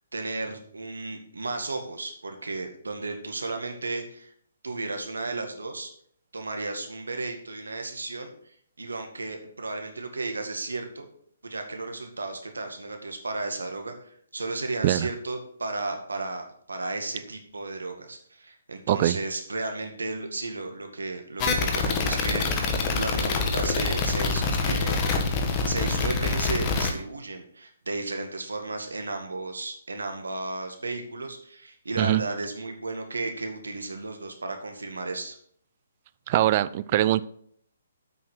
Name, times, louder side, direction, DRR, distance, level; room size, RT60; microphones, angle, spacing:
voice 1, 0.1-4.3 4.6-5.9 6.3-11.1 11.4-25.1 25.7-35.4, right 3 dB, 80° right, 5 dB, 2.0 m, -34 dB
sound 1, 21.4-26.9, left 4 dB, 30° left, 1.5 m, -25 dB
voice 2, 36.3-37.2, right 13 dB, 40° right, 16 dB, 0.4 m, -22 dB
8.4 x 6.0 x 6.4 m, 0.64 s
figure-of-eight pair, 135°, 0 cm